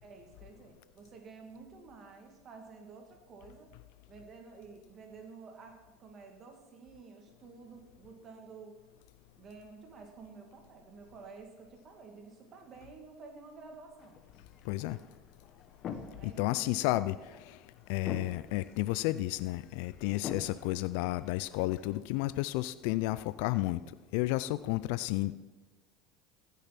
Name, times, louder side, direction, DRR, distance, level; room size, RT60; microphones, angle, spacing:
voice 1, 0.0-3.7 4.1-8.8 9.4-14.2 16.1-16.9, right 4 dB, 40° right, 2.3 m, -51 dB
sound 1, 14.0-22.0, left 7 dB, 45° left, 1.2 m, -47 dB
voice 2, 14.7-15.0 16.2-17.2 17.5-17.6 17.9-23.8 24.1-25.3, left 18 dB, 70° left, 0.4 m, -32 dB
15.0 x 6.7 x 6.0 m
supercardioid pair, 100°, 0 cm